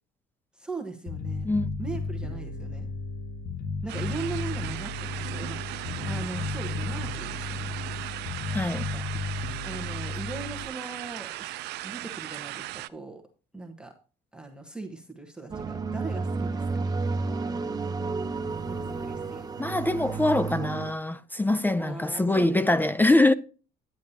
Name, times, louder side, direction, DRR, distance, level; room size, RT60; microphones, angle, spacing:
voice 1, 0.5-1.5 1.8-2.9 3.8-7.7 8.7-9.0 9.6-11.6 11.8-13.2 13.5-13.9 14.3-17.0 18.7-19.5 21.8-22.6, right 3 dB, 5° right, 1.2 m, -39 dB
Bass guitar, 1.1-10.7, left 3 dB, 60° left, 1.7 m, -34 dB
sound 1, 3.9-12.9, right 17 dB, 80° right, 0.5 m, -37 dB
voice 2, 8.5-8.9 19.6-23.3, left 2 dB, 10° left, 0.4 m, -23 dB
sound 2, 15.5-20.9, right 4 dB, 25° right, 0.8 m, -31 dB
10.5 x 9.5 x 2.8 m
cardioid pair, 110°, 17 cm